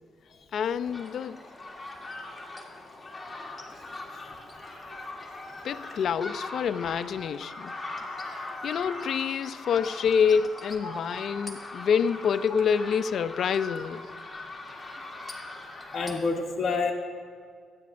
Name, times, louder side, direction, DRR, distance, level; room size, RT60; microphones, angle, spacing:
voice 1, 0.5-1.4 5.6-7.7 8.6-14.1, left 7 dB, 65° left, 0.4 m, -27 dB
sound 1, 0.8-16.2, left 2 dB, 20° left, 1.7 m, -41 dB
voice 2, 15.9-16.9, left 4 dB, 45° left, 1.0 m, -28 dB
23.5 x 9.2 x 2.5 m
cardioid pair, 90°, 0 cm